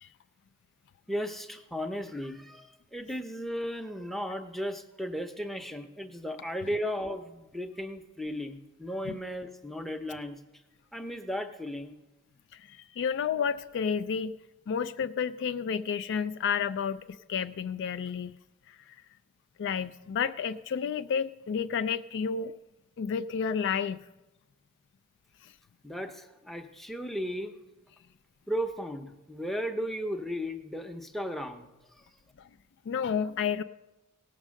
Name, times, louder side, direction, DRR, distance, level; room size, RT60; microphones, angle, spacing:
voice 1, 1.1-10.4 10.9-11.9 25.8-27.5 28.5-31.7 32.0-32.1, equal, ahead, 5 dB, 0.7 m, -35 dB
voice 2, 12.5-14.4 14.7-18.4 18.7-19.0 19.6-22.5 23.0-24.0 25.4-25.5 32.4-32.5 32.9-33.6, left 6 dB, 55° left, 11 dB, 0.3 m, -31 dB
17.5 x 6.4 x 6.3 m, 1.1 s
head